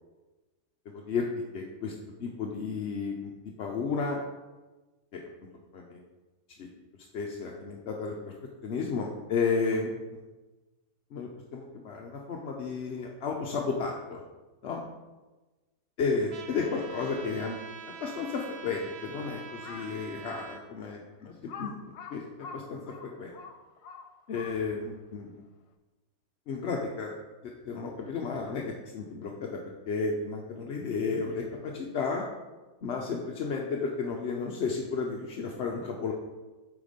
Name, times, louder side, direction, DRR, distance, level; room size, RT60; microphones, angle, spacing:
voice 1, 0.9-1.9 2.2-4.2 5.1-5.2 5.7-6.0 6.6-6.7 7.1-8.2 8.6-10.0 11.1-14.2 14.6-14.8 16.0-17.6 17.9-23.3 24.3-25.4 26.5-27.2 27.4-29.6 29.8-32.2 32.8-36.1, left 4 dB, 55° left, -1 dB, 0.8 m, -33 dB
Trumpet, 16.3-20.6, right 6 dB, 65° right, 0.5 m, -45 dB
Crow, 19.5-20.0 20.6-20.7 21.5-24.9, left 6 dB, 80° left, 1.2 m, -45 dB
9.2 x 3.6 x 5.1 m, 1.2 s
omnidirectional pair, 1.7 m